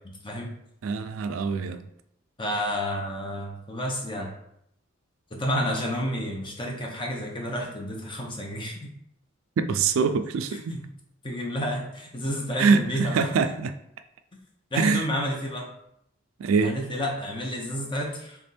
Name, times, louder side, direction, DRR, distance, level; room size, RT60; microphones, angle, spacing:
voice 1, 0.8-1.8 9.6-10.8 12.6-13.7 14.7-15.1 16.4-16.8, right 5 dB, 80° right, 10 dB, 0.4 m, -24 dB
voice 2, 2.4-4.3 5.3-8.9 10.5-10.9 11.2-13.3 14.7-15.7 16.6-18.4, equal, 25° left, 0 dB, 0.8 m, -30 dB
3.5 x 3.4 x 4.2 m, 0.75 s
head